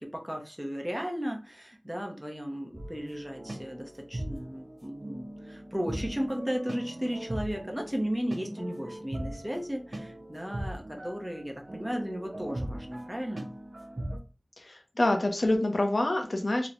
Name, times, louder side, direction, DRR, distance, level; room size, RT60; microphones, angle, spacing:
voice 1, 0.0-13.5, equal, 10° right, 1 dB, 0.7 m, -35 dB
sound 1, 2.7-14.2, right 1 dB, 65° right, 0.4 m, -40 dB
voice 2, 14.6-16.7, left 1 dB, 80° left, 4 dB, 0.6 m, -27 dB
3.0 x 2.1 x 2.4 m, 0.32 s
wide cardioid pair, 50°, 0 cm